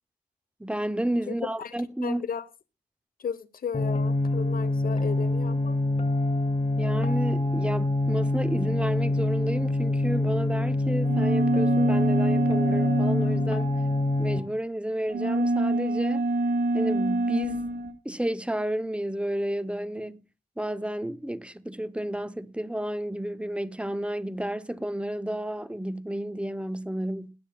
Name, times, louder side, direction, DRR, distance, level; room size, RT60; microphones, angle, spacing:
voice 1, 0.6-2.2 6.8-13.7 14.2-16.2 16.7-17.6 18.0-20.2 20.6-27.3, right 1 dB, 5° right, 0.7 m, -31 dB
voice 2, 2.0-2.4 3.2-5.8, left 7 dB, 70° left, 0.9 m, -34 dB
sound 1, 3.7-14.4, left 2 dB, 40° left, 2.3 m, -26 dB
sound 2, 11.0-14.1 15.1-17.9, right 2 dB, 75° right, 2.0 m, -26 dB
20.5 x 8.9 x 2.3 m
wide cardioid pair, 100°, 16 cm